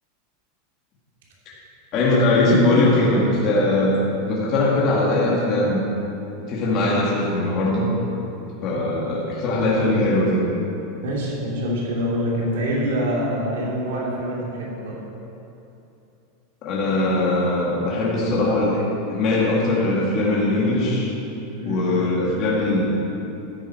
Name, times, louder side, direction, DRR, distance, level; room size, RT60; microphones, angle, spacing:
voice 1, 1.9-3.9 4.3-5.8 6.5-7.9 8.6-10.5 16.6-18.8 19.1-21.1 21.7-23.0, left 2 dB, 35° left, -5 dB, 2.3 m, -20 dB
voice 2, 11.0-15.0 21.6-21.9, equal, 80° right, -4 dB, 3.0 m, -25 dB
13.0 x 9.0 x 4.7 m, 2.8 s
supercardioid pair, 165°, 0 cm